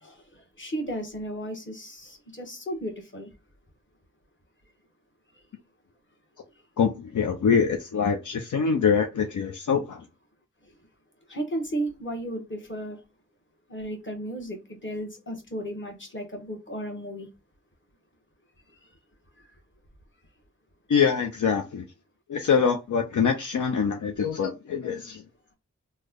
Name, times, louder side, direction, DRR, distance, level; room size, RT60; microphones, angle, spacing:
voice 1, 0.0-3.3 11.3-13.0 13.7-17.3, right 1 dB, 40° left, 1.1 m, -34 dB
voice 2, 6.8-10.0 20.9-21.8 22.3-25.2, left 6 dB, 75° left, 0.5 m, -24 dB
3.1 x 2.1 x 3.5 m
wide cardioid pair, 45°, 30 cm